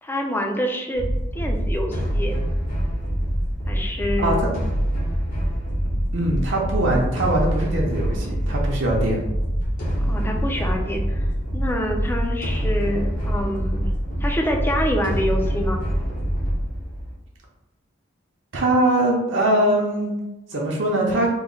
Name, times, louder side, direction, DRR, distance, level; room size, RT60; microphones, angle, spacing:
voice 1, 0.0-1.1 1.4-2.4 3.7-4.5 10.0-11.2 11.5-13.9 14.2-15.8, equal, 10° left, 2 dB, 0.4 m, -26 dB
sound 1, 0.9-17.1, equal, 45° left, 0.9 m, -25 dB
voice 2, 4.2-4.5 6.1-9.2 18.5-20.1 20.5-21.3, right 1 dB, 65° right, -2 dB, 0.7 m, -22 dB
3.0 x 2.1 x 3.7 m, 0.97 s
head